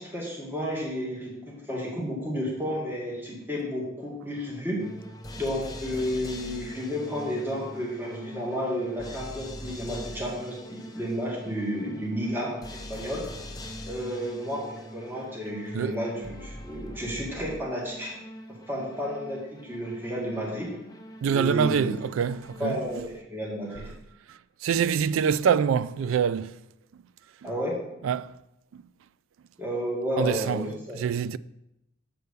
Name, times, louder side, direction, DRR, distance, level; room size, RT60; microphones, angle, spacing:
voice 1, 0.0-4.8 5.4-13.2 13.8-18.2 18.7-20.7 21.3-21.9 22.6-23.9 27.4-27.8 29.6-31.0, equal, 10° right, 1.8 m, -32 dB
sound 1, 4.8-23.3, equal, 20° left, 0.7 m, -43 dB
voice 2, 21.2-23.0 24.3-26.6 27.4-27.5 28.0-28.3 28.7-28.8 30.2-31.4, right 7 dB, 85° right, 0.3 m, -26 dB
6.8 x 4.6 x 6.7 m
head